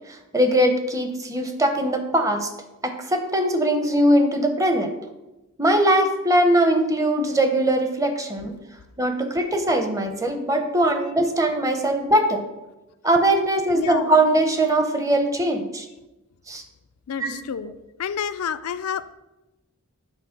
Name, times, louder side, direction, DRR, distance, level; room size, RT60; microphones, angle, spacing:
voice 1, 0.1-2.5 2.8-4.9 5.6-8.5 9.0-12.4 13.0-15.9 16.5-16.6 17.2-17.3, right 1 dB, 15° right, 6 dB, 0.7 m, -21 dB
voice 2, 13.7-14.1 17.1-17.7 18.0-19.1, left 7 dB, 90° left, 12 dB, 0.4 m, -29 dB
9.0 x 4.0 x 5.8 m, 1.0 s
head